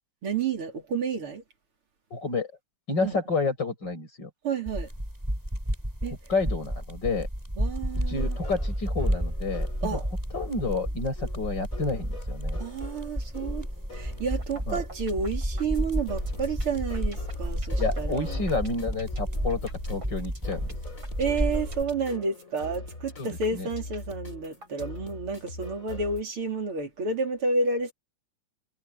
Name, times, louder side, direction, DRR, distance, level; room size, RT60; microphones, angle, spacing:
voice 1, 0.2-1.4 3.0-3.2 4.4-4.9 6.0-6.2 7.6-8.4 9.8-10.0 12.6-13.7 13.9-18.4 21.2-27.9, right 4 dB, 85° right, 4.2 m, -30 dB
voice 2, 2.1-2.5 2.9-4.3 6.3-7.3 8.1-10.0 10.3-12.6 14.7-14.8 17.8-19.6 19.9-20.8 23.2-23.7, left 3 dB, 55° left, 7.9 m, -30 dB
sound 1, 4.7-21.8, equal, 10° right, 8.0 m, -31 dB
sound 2, 7.9-26.2, left 2 dB, 35° left, 4.4 m, -43 dB
sound 3, 14.4-14.6 14.9-25.0, right 2 dB, 65° right, 8.8 m, -49 dB
omnidirectional pair, 2.3 m